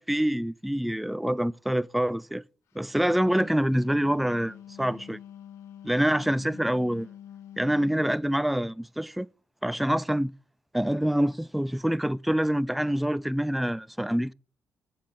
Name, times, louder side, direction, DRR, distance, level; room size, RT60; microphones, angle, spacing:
voice 1, 0.0-2.4 2.8-5.2 5.8-7.1 7.6-9.3 9.6-10.3 10.7-14.3, right 1 dB, ahead, 0.4 m, -26 dB
Wind instrument woodwind instrument, 2.9-8.2, left 10 dB, 80° left, 1.2 m, -47 dB
8.3 x 5.8 x 6.0 m
supercardioid pair, 65°, 5 cm